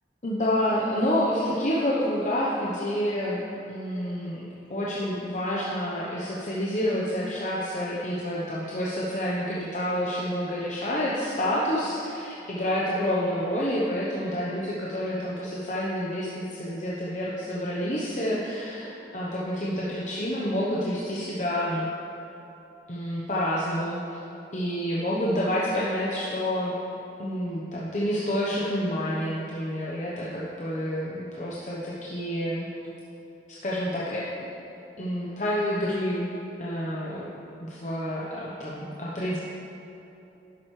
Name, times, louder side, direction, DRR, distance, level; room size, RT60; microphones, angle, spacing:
voice 1, 0.2-3.4 3.7-4.4 4.7-21.9 22.9-24.2 24.5-26.7 27.2-32.7 33.5-34.5 35.0-36.2 36.6-37.3 37.6-39.4, equal, 40° left, -6 dB, 0.9 m, -28 dB
11.0 x 7.6 x 3.2 m, 2.9 s
head